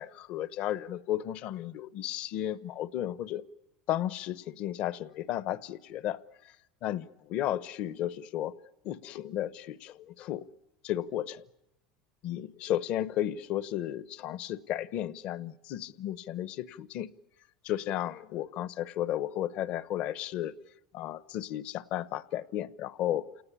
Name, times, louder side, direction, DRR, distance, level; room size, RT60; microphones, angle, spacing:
voice 1, 0.0-3.5 3.9-6.2 6.8-8.5 8.8-10.4 10.8-11.5 12.2-17.1 17.6-20.5 20.9-23.3, left 12 dB, 55° left, 16 dB, 0.9 m, -34 dB
28.0 x 18.5 x 9.9 m, 0.89 s
supercardioid pair, 130°, 3 cm